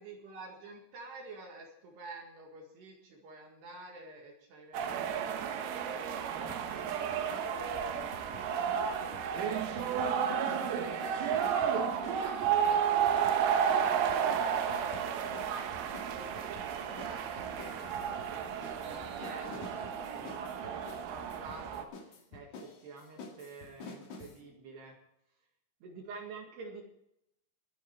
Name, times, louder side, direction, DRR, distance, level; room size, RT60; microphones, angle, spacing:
voice 1, 0.0-6.8 7.1-24.9 25.8-26.8, right 3 dB, 65° right, 0 dB, 3.8 m, -49 dB
sound 1, 4.7-21.8, right 8 dB, 80° right, 3.7 m, -32 dB
sound 2, 6.5-7.5 7.7-10.7 11.0-24.4, left 3 dB, 50° left, 2.7 m, -50 dB
22.0 x 8.2 x 4.7 m, 0.80 s
omnidirectional pair, 5.5 m